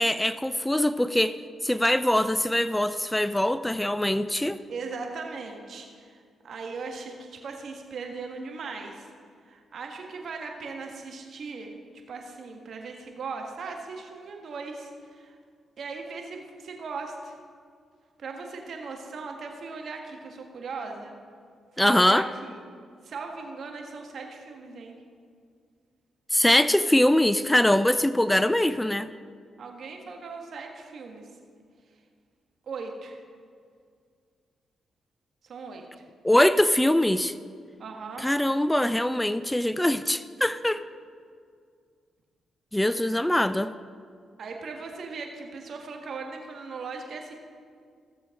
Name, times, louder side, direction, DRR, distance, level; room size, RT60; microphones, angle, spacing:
voice 1, 0.0-1.3 1.6-4.6 21.8-22.3 26.3-29.1 36.2-37.3 38.2-40.8 42.7-43.7, left 1 dB, 10° left, 14 dB, 0.4 m, -22 dB
voice 2, 4.7-6.2 6.4-9.1 9.5-11.7 12.1-15.4 15.8-17.4 18.2-21.1 21.7-22.6 23.0-25.0 29.6-31.3 32.7-33.2 35.4-36.0 37.8-38.3 44.4-47.4, right 4 dB, 65° right, 2 dB, 1.6 m, -38 dB
16.5 x 7.2 x 3.7 m, 2.1 s
supercardioid pair, 50°, 0 cm